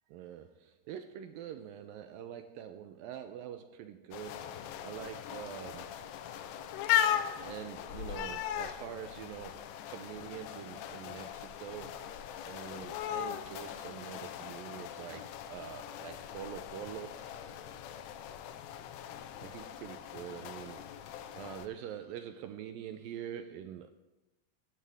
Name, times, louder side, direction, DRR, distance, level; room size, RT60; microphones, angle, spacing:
voice 1, 0.1-6.0 7.3-12.2 12.4-17.1 19.4-23.9, right 10 dB, 85° right, 8 dB, 2.1 m, -45 dB
sound 1, 4.1-21.7, left 11 dB, 85° left, 2.9 m, -38 dB
18.0 x 13.0 x 3.6 m, 1.0 s
omnidirectional pair, 4.7 m